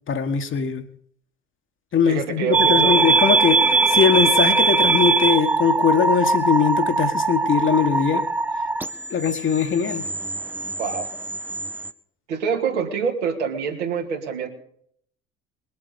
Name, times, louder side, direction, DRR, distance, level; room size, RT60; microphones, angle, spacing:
voice 1, 0.1-0.8 1.9-8.2 9.1-10.0, left 7 dB, 35° left, 1.6 m, -21 dB
voice 2, 2.1-2.9 10.8-11.1 12.3-14.5, right 6 dB, 75° right, 2.5 m, -26 dB
sound 1, 2.5-11.9, right 4 dB, 5° right, 0.9 m, -21 dB
21.5 x 8.2 x 5.3 m
figure-of-eight pair, 60°, 35 cm